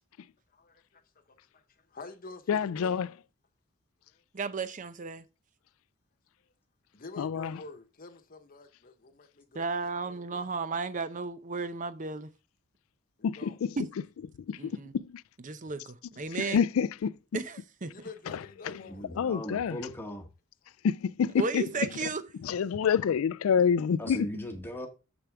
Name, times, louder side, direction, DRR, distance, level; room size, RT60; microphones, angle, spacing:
voice 1, 0.5-3.0 4.1-4.2 6.4-6.5 6.9-9.6 10.0-10.5 13.2-13.6 17.9-19.1, left 3 dB, 45° left, 1.0 m, -48 dB
voice 2, 2.5-3.1 7.2-7.6 13.2-13.8 14.5-15.2 16.5-17.1 18.3-18.4 18.6-18.8 19.2-19.8 20.8-21.6 22.0-22.1 22.4-24.3, left 7 dB, 85° left, 0.4 m, -27 dB
voice 3, 4.3-5.2 9.5-12.3 13.8-13.9 14.6-14.9 15.4-16.6 17.3-17.9 21.4-22.2, right 4 dB, 40° right, 0.6 m, -34 dB
voice 4, 18.9-20.3 24.0-24.9, equal, 10° left, 1.2 m, -38 dB
7.1 x 6.8 x 3.5 m
head